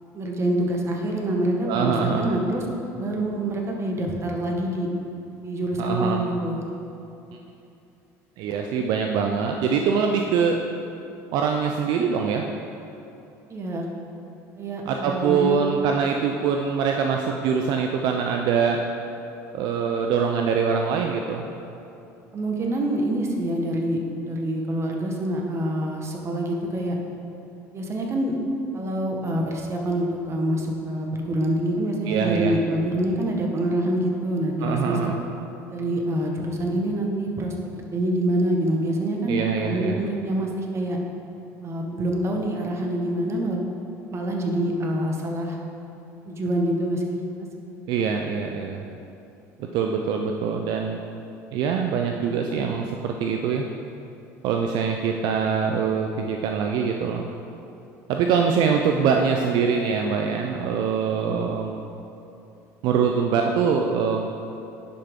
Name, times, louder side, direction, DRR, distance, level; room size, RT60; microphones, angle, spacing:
voice 1, 0.1-2.6 3.0-4.9 5.4-6.6 13.5-13.8 14.6-15.6 22.3-27.0 27.7-28.4 28.7-35.1 35.7-37.5 37.9-41.0 41.6-43.6 44.1-45.6 46.3-47.2, right 1 dB, 35° right, 1 dB, 1.3 m, -26 dB
voice 2, 1.7-2.3 5.8-6.2 8.4-10.6 11.3-12.4 14.9-18.8 19.5-21.5 32.1-32.6 34.6-35.2 39.3-40.0 47.9-48.8 49.6-51.0 51.5-53.7 54.4-57.3 58.1-61.8 62.8-64.3, right 6 dB, 65° right, 3 dB, 0.5 m, -23 dB
10.0 x 5.8 x 3.7 m, 2.9 s
supercardioid pair, 85°, 8 cm